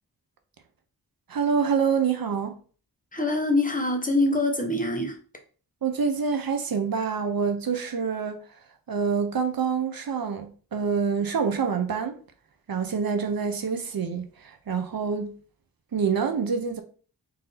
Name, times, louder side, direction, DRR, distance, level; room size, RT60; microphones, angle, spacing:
voice 1, 1.3-2.5 5.8-8.4 8.9-12.2 12.7-15.3 15.9-16.8, right 6 dB, 65° right, 0.7 m, -26 dB
voice 2, 3.1-5.2, left 2 dB, 20° left, 0.8 m, -24 dB
4.0 x 2.7 x 3.9 m
wide cardioid pair, 100°, 39 cm